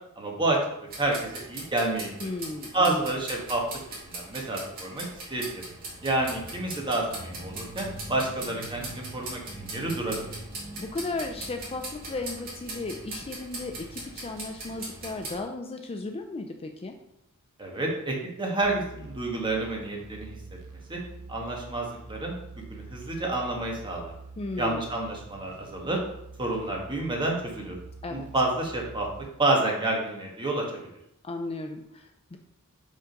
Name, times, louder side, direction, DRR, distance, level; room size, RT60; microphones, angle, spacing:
voice 1, 0.2-0.6 1.0-2.3 2.7-3.6 3.9-5.0 5.3-5.6 6.0-10.3 17.6-20.4 20.9-21.0 21.3-22.3 22.7-24.1 24.6-26.0 26.4-27.8 28.1-29.1 29.4-30.6, right 2 dB, 20° right, -1 dB, 1.3 m, -29 dB
sound 1, 0.9-15.4, right 2 dB, 40° right, 2.0 m, -40 dB
voice 2, 2.2-3.1 10.8-17.0 24.4-24.8 28.0-28.3 31.2-32.4, left 2 dB, 25° left, 5 dB, 0.4 m, -35 dB
sound 2, 18.6-29.3, right 3 dB, 80° right, 0.7 m, -46 dB
5.2 x 3.7 x 5.2 m, 0.82 s
head